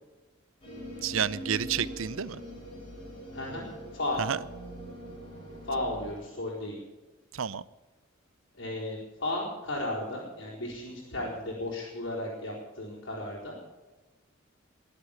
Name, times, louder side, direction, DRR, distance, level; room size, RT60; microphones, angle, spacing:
sound 1, 0.6-6.1, equal, 25° left, 6.6 m, -42 dB
voice 1, 1.0-2.4 4.2-4.4 7.3-7.6, right 7 dB, 90° right, 0.7 m, -30 dB
voice 2, 3.3-4.2 5.6-6.8 8.5-13.6, left 1 dB, 65° left, 4.6 m, -34 dB
21.5 x 8.3 x 7.2 m
head